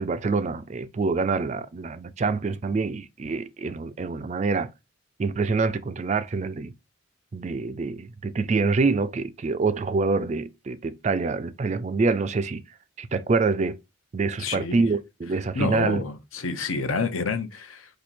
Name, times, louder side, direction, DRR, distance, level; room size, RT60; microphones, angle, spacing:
voice 1, 0.0-4.7 5.2-6.7 7.3-12.6 13.0-13.8 14.1-16.0, right 4 dB, 35° right, 0.3 m, -26 dB
voice 2, 14.4-14.8 15.5-17.9, left 4 dB, 75° left, 0.8 m, -29 dB
4.4 x 2.7 x 4.1 m
head